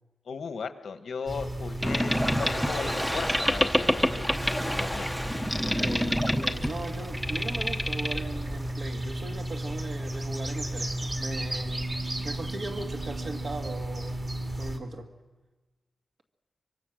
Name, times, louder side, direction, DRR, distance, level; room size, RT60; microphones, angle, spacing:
voice 1, 0.3-4.3 4.8-5.1, left 5 dB, 90° left, 1.3 m, -37 dB
sound 1, 1.3-14.8, right 1 dB, 30° right, 2.2 m, -34 dB
Boat Water vehicle, 1.8-8.7, equal, ahead, 0.9 m, -28 dB
voice 2, 5.6-14.2 14.6-15.2, right 2 dB, 55° right, 2.1 m, -38 dB
24.5 x 24.0 x 6.4 m
wide cardioid pair, 175°, 0 cm